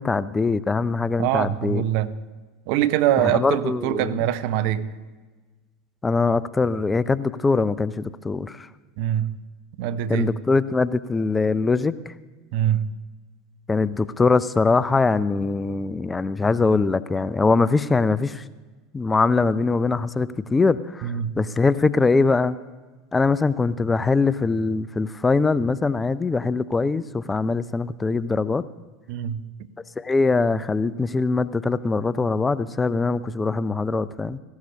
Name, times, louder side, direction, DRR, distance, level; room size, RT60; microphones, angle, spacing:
voice 1, 0.0-1.8 3.2-4.2 6.0-8.7 10.1-12.1 13.7-18.4 18.9-22.6 23.1-28.7 30.0-34.4, left 4 dB, 15° left, 0.5 m, -22 dB
voice 2, 1.2-2.1 2.7-4.9 9.0-9.4 9.8-10.4 12.5-12.9 21.0-21.4 29.1-29.4, right 11 dB, 55° right, 0.8 m, -23 dB
17.5 x 15.5 x 2.8 m
figure-of-eight pair, 75°, 0 cm